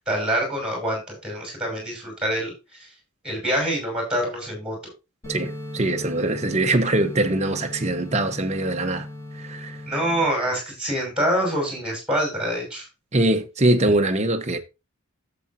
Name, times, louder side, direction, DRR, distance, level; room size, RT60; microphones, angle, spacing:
voice 1, 0.0-2.5 3.2-4.8 9.9-12.8, equal, 5° right, 6.1 m, -25 dB
sound 1, 5.2-10.2, left 1 dB, 15° left, 4.9 m, -37 dB
voice 2, 5.3-9.1 9.4-9.8 13.1-14.6, right 2 dB, 30° right, 1.0 m, -22 dB
11.5 x 7.8 x 2.7 m
head